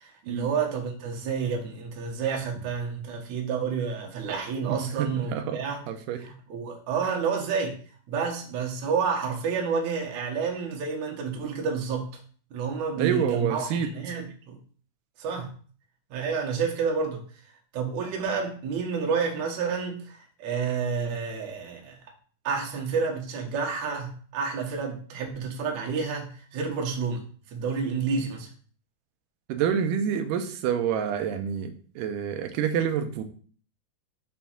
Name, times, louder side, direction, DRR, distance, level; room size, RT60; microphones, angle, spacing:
voice 1, 0.0-5.8 6.2-7.7 8.1-12.2 12.5-14.6 15.2-15.5 16.1-17.2 17.7-22.0 22.4-27.2 27.5-28.5, right 5 dB, 60° right, 1 dB, 2.1 m, -29 dB
voice 2, 4.7-5.6 5.9-6.2 13.0-13.9 29.5-33.2, right 8 dB, 75° right, 7 dB, 2.0 m, -27 dB
6.2 x 3.9 x 5.7 m, 0.43 s
omnidirectional pair, 4.6 m